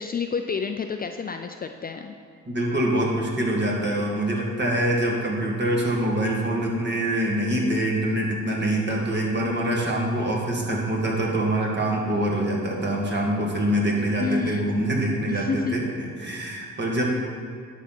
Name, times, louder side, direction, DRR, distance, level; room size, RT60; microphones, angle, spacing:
voice 1, 0.0-2.1 14.2-14.6 15.3-15.7, left 5 dB, 30° left, 6 dB, 0.4 m, -29 dB
voice 2, 2.5-17.0, right 1 dB, 35° right, -2 dB, 2.1 m, -25 dB
11.0 x 4.2 x 6.1 m, 2.3 s
cardioid pair, 90°, 30 cm